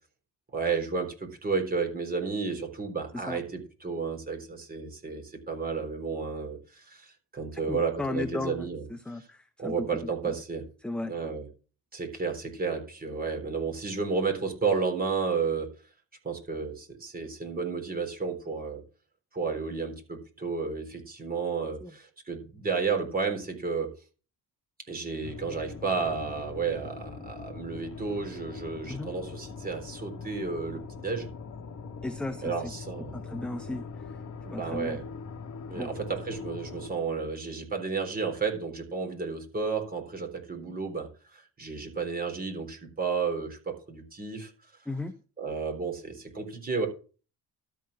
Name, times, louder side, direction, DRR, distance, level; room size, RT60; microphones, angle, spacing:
voice 1, 0.5-8.9 9.2-9.3 9.6-10.6 11.1-11.5 11.9-15.7 16.2-18.8 19.3-23.9 24.9-31.3 32.4-33.2 34.4-35.0 35.7-44.5 45.4-46.9, right 5 dB, 20° right, 3 dB, 3.8 m, -32 dB
voice 2, 7.5-10.3 10.8-11.3 21.8-21.9 28.9-29.1 32.0-32.7 33.1-34.2 34.5-35.0 35.7-35.9 44.9-45.1, left 2 dB, 5° left, 8 dB, 0.7 m, -36 dB
sound 1, 25.2-36.9, left 5 dB, 50° left, 2.4 m, -42 dB
12.5 x 4.7 x 7.5 m, 0.35 s
cardioid pair, 110°, 39 cm